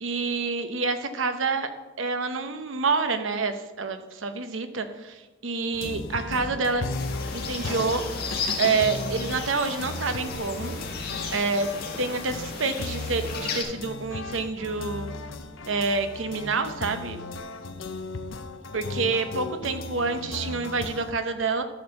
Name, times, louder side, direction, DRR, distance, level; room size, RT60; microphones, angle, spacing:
voice 1, 0.0-1.7 2.0-6.9 7.3-8.0 8.6-10.8 11.3-11.7 12.0-15.1 15.7-17.2 18.7-21.6, right 4 dB, 85° right, 8 dB, 0.9 m, -27 dB
sound 1, 5.7-21.1, left 3 dB, 85° left, 0.7 m, -36 dB
sound 2, 6.3-14.7 15.1-15.2 15.5-16.8 17.3-17.4, left 1 dB, 10° left, 1.7 m, -47 dB
sound 3, 6.9-13.6, left 5 dB, 50° left, 1.7 m, -35 dB
12.0 x 4.4 x 6.6 m, 1.1 s
head